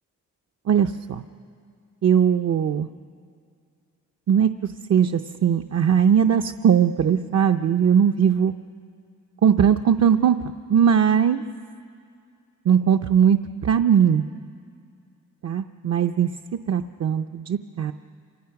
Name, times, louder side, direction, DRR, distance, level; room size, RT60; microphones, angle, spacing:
voice 1, 0.7-1.2 2.0-2.9 4.3-4.5 4.9-8.5 9.4-10.4 10.7-11.4 12.7-14.2 15.4-16.3 16.7-17.9, right 8 dB, 55° right, 6 dB, 0.6 m, -19 dB
28.5 x 26.5 x 5.9 m, 2.3 s
cardioid pair, 100°, 32 cm